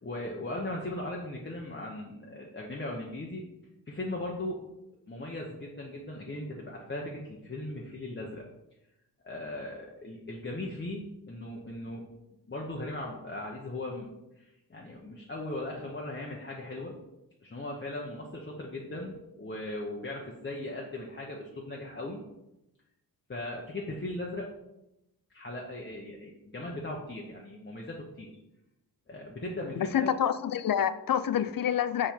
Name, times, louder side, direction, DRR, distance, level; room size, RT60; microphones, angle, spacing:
voice 1, 0.0-3.4 3.9-4.6 5.1-8.4 9.2-12.1 12.5-14.1 14.4-17.0 17.4-22.2 23.3-24.5 25.3-28.3 29.1-30.1, left 1 dB, 25° left, -2 dB, 0.9 m, -38 dB
voice 2, 29.8-32.1, left 9 dB, 60° left, 13 dB, 0.5 m, -27 dB
7.3 x 4.3 x 4.4 m, 0.92 s
wide cardioid pair, 115°, 40 cm